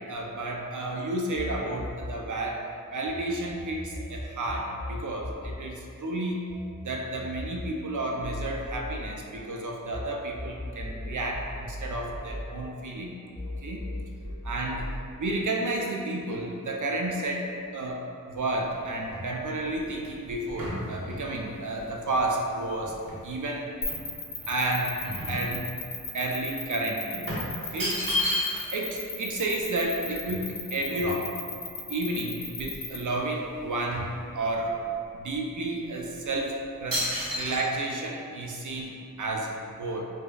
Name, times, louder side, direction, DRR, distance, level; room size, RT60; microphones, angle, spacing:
voice 1, 0.0-2.6 2.9-6.4 6.8-13.2 13.6-13.8 14.4-14.9 15.2-22.9 23.2-23.7 24.5-25.0 25.3-25.7 26.1-28.0 28.7-31.3 31.9-34.8 35.1-37.0 37.3-40.1, right 2 dB, 65° right, 0 dB, 0.5 m, -31 dB
sound 1, 1.4-3.2 3.5-10.0 10.4-13.0 13.4-15.0, left 1 dB, 20° left, 0.8 m, -38 dB
sound 2, 18.5-23.4 23.9-26.1 26.4-26.5 27.3-28.8 29.1-29.2 29.4-31.6 32.1-32.2 32.5-33.3 33.5-34.8 35.3-35.5 36.1-36.4 36.9-37.6, left 1 dB, 90° right, 0.9 m, -34 dB
sound 3, 23.8-33.0, left 5 dB, 75° left, 0.5 m, -35 dB
5.0 x 2.1 x 2.3 m, 2.5 s
wide cardioid pair, 45°, 34 cm